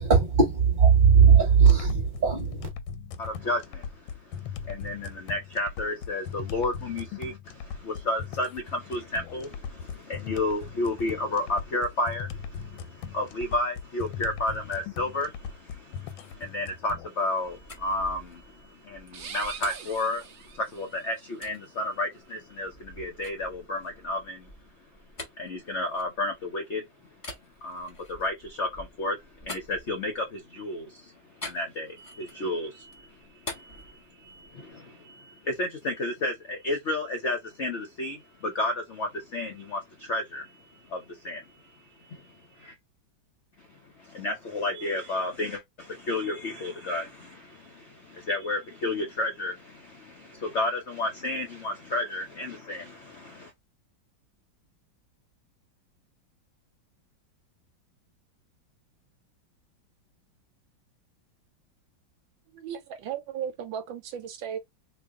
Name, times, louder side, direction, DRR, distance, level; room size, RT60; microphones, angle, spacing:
voice 1, 0.0-2.7, right 6 dB, 30° right, 1.2 m, -19 dB
sound 1, 1.7-17.1, left 7 dB, 90° left, 1.4 m, -39 dB
voice 2, 3.2-24.5 25.4-26.9 27.6-42.7 43.6-53.5, left 2 dB, 65° left, 0.7 m, -32 dB
sound 2, 17.4-20.8 21.4-21.6 22.2-26.6 27.2-30.4 31.4-32.5 32.8-34.6, left 2 dB, 25° left, 0.8 m, -45 dB
sound 3, 19.1-21.1, right 6 dB, 60° right, 0.9 m, -42 dB
voice 3, 62.5-64.6, right 8 dB, 80° right, 1.4 m, -35 dB
3.1 x 2.3 x 3.6 m
omnidirectional pair, 2.2 m